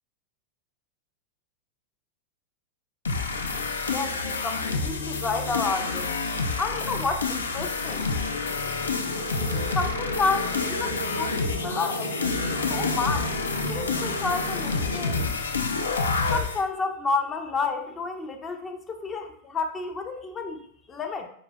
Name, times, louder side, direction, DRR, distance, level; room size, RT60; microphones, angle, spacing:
sound 1, 3.0-16.6, left 4 dB, 70° left, 0.5 m, -29 dB
voice 1, 3.9-6.1 6.6-8.1 9.7-13.3 13.6-15.2 16.3-20.6 20.9-21.3, left 4 dB, 20° left, 5 dB, 0.5 m, -30 dB
sound 2, 7.7-15.3, equal, 85° right, 0.9 m, -34 dB
4.9 x 4.8 x 2.2 m, 0.63 s
figure-of-eight pair, 90°, 0 cm